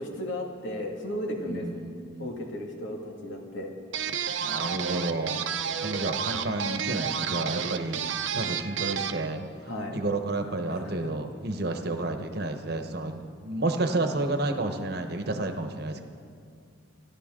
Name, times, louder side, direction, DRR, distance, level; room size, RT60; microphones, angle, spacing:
voice 1, 0.0-1.7 2.2-3.7 9.7-10.0 10.7-11.1, left 1 dB, 75° left, 1 dB, 2.2 m, -35 dB
voice 2, 1.5-2.3 4.4-5.4 5.7-8.0 8.3-9.4 9.9-16.0, right 2 dB, 50° right, 6 dB, 1.1 m, -31 dB
sound 1, 3.9-9.3, right 7 dB, 70° right, 0.7 m, -31 dB
25.0 x 11.5 x 3.8 m, 2.3 s
head